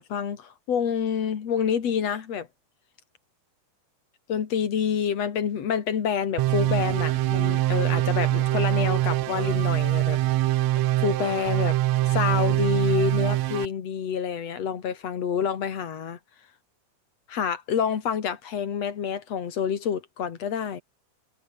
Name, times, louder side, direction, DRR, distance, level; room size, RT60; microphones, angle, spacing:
voice 1, 0.0-2.5 4.3-10.2 10.5-10.6 11.0-11.8 12.0-16.2 17.3-20.8, left 7 dB, 50° left, 3.0 m, -28 dB
sound 1, 6.4-13.7, right 16 dB, 75° right, 1.6 m, -23 dB
omnidirectional pair, 3.9 m